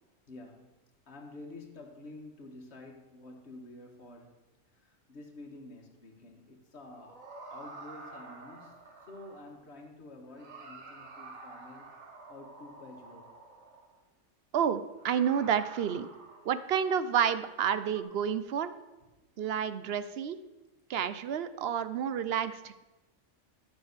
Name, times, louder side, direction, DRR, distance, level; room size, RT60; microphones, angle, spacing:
voice 1, 0.3-0.8 1.1-4.4 4.8-7.2 7.5-11.9 12.3-13.4, left 2 dB, 55° left, 1 dB, 1.7 m, -49 dB
sound 1, 6.9-9.6 10.3-14.0 15.0-16.8 17.9-18.0, right 3 dB, 85° right, 1.8 m, -49 dB
voice 2, 14.5-16.1 16.4-18.7 19.4-20.4 20.9-22.8, right 8 dB, 60° right, 13 dB, 0.7 m, -30 dB
12.5 x 5.4 x 6.5 m, 1.1 s
omnidirectional pair, 1.4 m